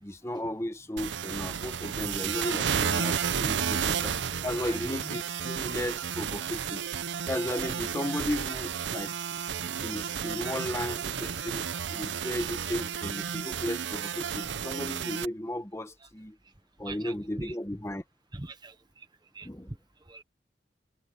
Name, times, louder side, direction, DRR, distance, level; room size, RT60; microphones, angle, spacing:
voice 1, 0.0-4.1 4.4-6.8 7.3-9.1 9.8-16.4 16.8-18.0 19.4-19.7, left 1 dB, 15° left, 1.2 m, -35 dB
sound 1, 1.0-15.3, right 7 dB, 85° right, 0.7 m, -32 dB
voice 2, 4.4-5.2 16.0-16.1 16.8-17.5 18.3-19.1 19.3-19.8 20.0-20.2, right 2 dB, 25° right, 1.1 m, -43 dB
head